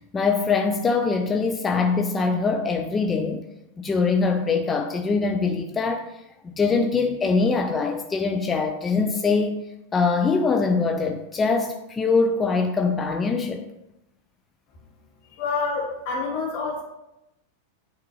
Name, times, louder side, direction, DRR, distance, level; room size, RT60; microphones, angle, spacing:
voice 1, 0.1-3.4 3.8-6.1 6.5-9.6 9.9-13.6, left 4 dB, 20° left, 4 dB, 0.4 m, -23 dB
voice 2, 15.4-16.8, left 4 dB, 50° left, -3 dB, 2.0 m, -27 dB
9.1 x 3.6 x 3.1 m, 0.90 s
figure-of-eight pair, 90°, 0 cm